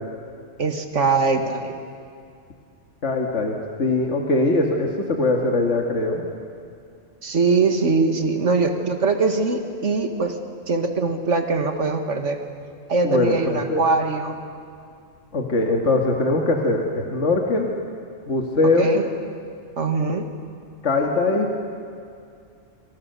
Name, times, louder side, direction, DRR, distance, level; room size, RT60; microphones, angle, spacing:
voice 1, 0.6-1.7 7.2-10.4 10.7-12.4 12.9-14.4 18.8-19.0 19.8-20.3, right 4 dB, 70° right, 6 dB, 2.1 m, -22 dB
voice 2, 3.0-6.2 13.0-13.8 15.3-17.7 18.3-18.9 20.8-21.5, left 2 dB, 65° left, 1 dB, 2.1 m, -21 dB
26.0 x 26.0 x 6.8 m, 2.4 s
omnidirectional pair, 1.3 m